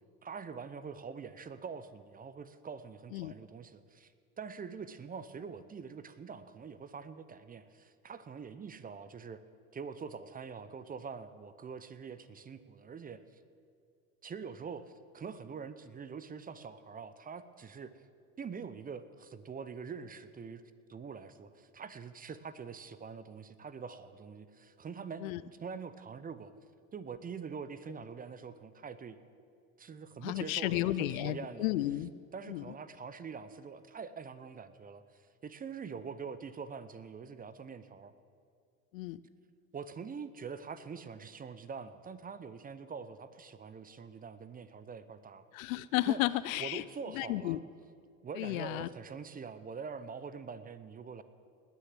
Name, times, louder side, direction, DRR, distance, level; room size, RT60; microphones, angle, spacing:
voice 1, 0.2-4.1 4.4-9.4 9.7-13.2 14.2-17.9 18.4-20.6 20.9-26.5 26.9-29.2 29.8-31.7 32.3-38.1 39.7-45.4 46.1-46.2 46.6-47.6 48.2-51.2, right 5 dB, 20° right, 13 dB, 0.7 m, -44 dB
voice 2, 30.2-32.1 32.5-32.7 38.9-39.2 45.5-46.8 47.1-47.6 48.3-48.9, left 16 dB, 70° left, 17 dB, 0.6 m, -33 dB
19.5 x 6.7 x 7.5 m, 2.3 s
hypercardioid pair, 80°, 42 cm